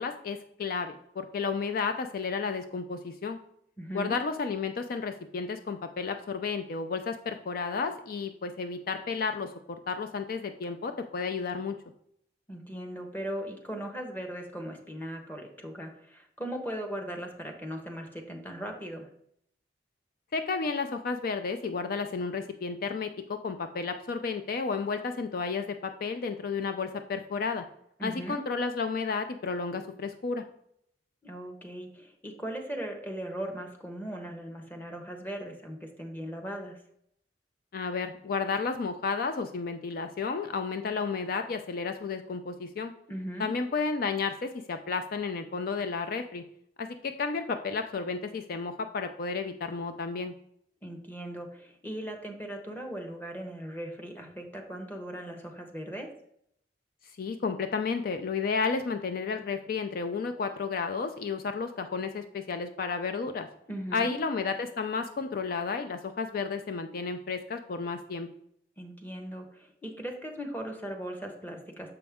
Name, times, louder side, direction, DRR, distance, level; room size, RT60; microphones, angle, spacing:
voice 1, 0.0-3.4 3.9-11.8 20.3-27.6 28.0-30.4 37.7-42.9 43.4-46.4 46.8-50.3 57.2-63.5 63.9-68.3, left 5 dB, 55° left, 8 dB, 0.4 m, -32 dB
voice 2, 3.8-4.1 12.5-19.1 28.0-28.4 31.2-36.8 43.1-43.5 50.8-56.1 63.7-64.2 68.8-72.0, right 1 dB, 10° left, 4 dB, 1.0 m, -38 dB
6.8 x 5.2 x 3.5 m, 0.70 s
head